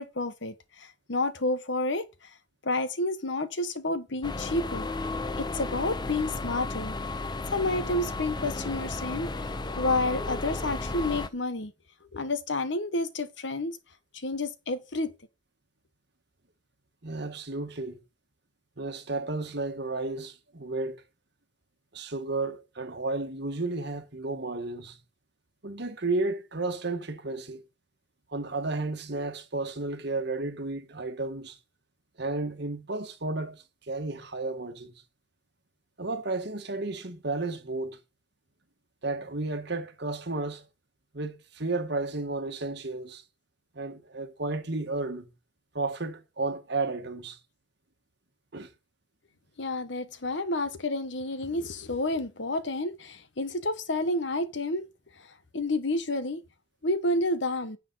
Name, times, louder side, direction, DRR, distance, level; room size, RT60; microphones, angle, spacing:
voice 1, 0.0-2.1 2.6-4.9 5.4-6.9 7.5-9.3 9.8-11.7 12.1-13.8 14.1-15.1 49.6-54.8 55.5-56.4 56.8-57.8, left 2 dB, 70° left, 1.2 m, -30 dB
sound 1, 4.2-11.3, left 2 dB, 20° left, 0.6 m, -34 dB
voice 2, 17.0-18.0 18.8-21.0 21.9-25.0 25.6-27.6 28.3-31.6 32.2-34.9 36.0-38.0 39.0-40.6 41.1-43.2 43.7-45.3 45.7-47.4 48.5-48.7, right 3 dB, 60° right, 1.6 m, -33 dB
10.0 x 7.2 x 4.0 m
head